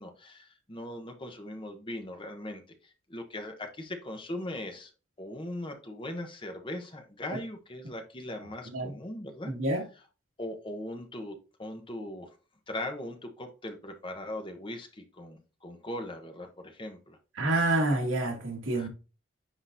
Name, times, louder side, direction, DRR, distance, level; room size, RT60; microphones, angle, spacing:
voice 1, 0.0-4.9 5.2-9.5 10.4-12.3 12.7-17.2 18.7-18.9, left 1 dB, 25° left, 1.0 m, -39 dB
voice 2, 9.4-9.8 17.4-18.9, right 2 dB, 80° right, 2.0 m, -27 dB
9.9 x 3.9 x 2.6 m
head